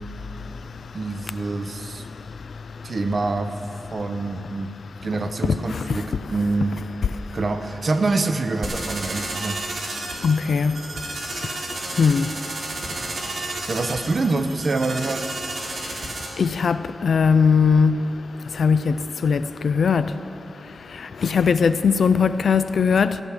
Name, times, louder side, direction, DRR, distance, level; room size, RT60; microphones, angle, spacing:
voice 1, 0.9-2.1 2.8-3.5 3.9-4.7 5.0-6.8 7.3-9.6 13.7-15.3, right 3 dB, 45° right, 8 dB, 0.7 m, -25 dB
voice 2, 5.7-6.0 10.2-10.8 11.4-11.5 12.0-12.3 16.4-18.0 18.5-20.1 20.9-23.2, left 5 dB, 80° left, 13 dB, 0.4 m, -20 dB
sound 1, 8.6-16.3, right 2 dB, 70° right, 2.2 m, -32 dB
14.5 x 6.1 x 9.6 m, 2.7 s
wide cardioid pair, 155°, 0 cm